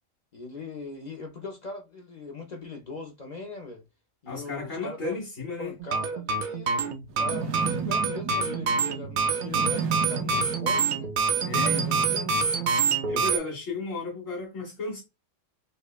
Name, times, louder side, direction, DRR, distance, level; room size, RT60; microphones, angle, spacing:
voice 1, 0.3-3.8 4.2-5.2 5.6-11.1 11.5-12.3, left 3 dB, 45° left, 0.6 m, -40 dB
voice 2, 4.3-5.7 11.4-11.9 13.1-15.0, left 3 dB, 80° left, 2.3 m, -34 dB
sound 1, 5.8-13.4, right 5 dB, 65° right, 0.4 m, -26 dB
sound 2, 7.2-13.2, right 5 dB, 90° right, 1.0 m, -34 dB
5.2 x 2.0 x 2.3 m
omnidirectional pair, 1.3 m